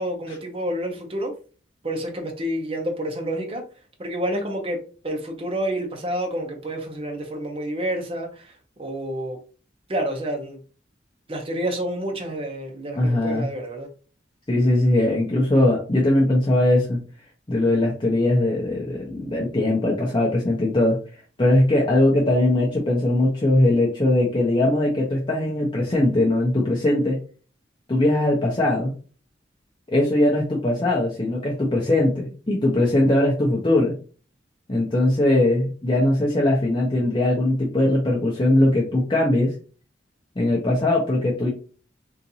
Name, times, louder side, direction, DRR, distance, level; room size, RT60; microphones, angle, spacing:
voice 1, 0.0-1.3 1.8-3.6 4.0-8.5 8.8-9.4 9.9-10.6 11.3-13.9, right 1 dB, 30° right, 0.6 m, -29 dB
voice 2, 13.0-13.5 14.5-17.0 17.5-21.0 21.4-27.2 27.9-28.9 29.9-33.9 34.7-39.5 40.4-41.5, left 1 dB, 25° left, 0.6 m, -20 dB
3.9 x 2.5 x 2.7 m
head